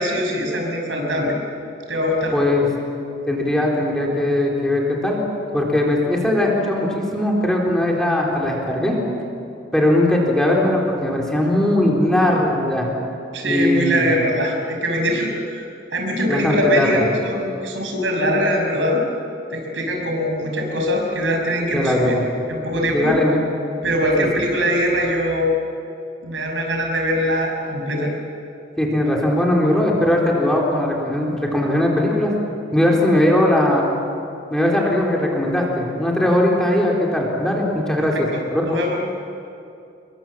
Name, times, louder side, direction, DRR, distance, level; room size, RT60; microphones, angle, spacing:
voice 1, 0.0-1.3 1.9-2.3 13.3-15.6 15.9-19.0 19.5-22.1 22.5-23.2 23.8-25.5 26.2-28.1 38.1-38.4 38.7-39.0, equal, 85° right, 2 dB, 5.9 m, -22 dB
voice 2, 2.3-2.7 3.3-5.2 5.5-9.0 9.7-12.9 13.4-14.1 16.3-17.1 21.7-22.2 22.9-23.4 28.8-32.4 32.7-33.9 34.5-38.6, left 1 dB, 5° left, -2 dB, 3.7 m, -19 dB
28.5 x 22.5 x 7.5 m, 2.6 s
head